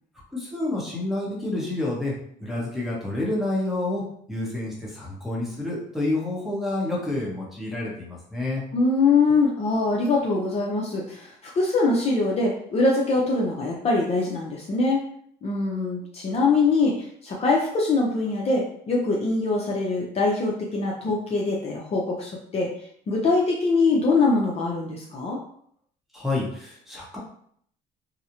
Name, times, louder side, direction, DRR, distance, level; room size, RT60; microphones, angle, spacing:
voice 1, 0.3-2.1 2.4-4.0 4.3-8.6 26.1-27.2, left 2 dB, ahead, -6 dB, 0.8 m, -28 dB
voice 2, 8.7-15.0 15.4-22.7 23.1-25.4, left 3 dB, 40° left, -2 dB, 0.5 m, -23 dB
2.4 x 2.0 x 2.8 m, 0.64 s
cardioid pair, 110°, 17 cm